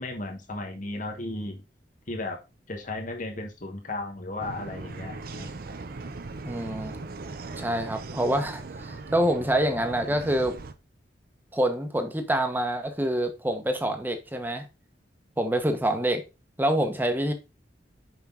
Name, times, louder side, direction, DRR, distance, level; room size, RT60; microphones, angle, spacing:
voice 1, 0.0-1.6 2.1-2.4 2.7-5.5, left 2 dB, 45° left, 1.2 m, -35 dB
sound 1, 4.4-10.7, right 3 dB, 55° right, 0.7 m, -39 dB
voice 2, 6.4-7.0 7.6-10.5 11.5-14.7 15.4-16.2 16.6-17.3, right 1 dB, 10° right, 1.1 m, -26 dB
6.0 x 5.6 x 3.7 m
head